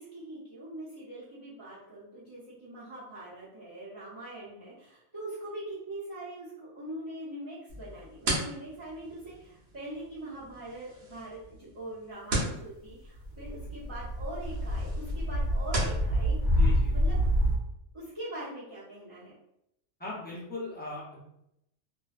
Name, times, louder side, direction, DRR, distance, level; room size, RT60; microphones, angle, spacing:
voice 1, 0.0-16.4 16.9-17.2 17.9-19.3, right 1 dB, 30° right, -12 dB, 0.6 m, -42 dB
sound 1, 7.7-16.0, right 1 dB, 60° right, 0.9 m, -37 dB
sound 2, 13.2-17.6, equal, 70° left, 0.8 m, -27 dB
voice 2, 16.6-16.9 20.0-21.2, left 2 dB, 10° left, -7 dB, 0.5 m, -39 dB
2.4 x 2.1 x 2.4 m, 0.80 s
omnidirectional pair, 1.2 m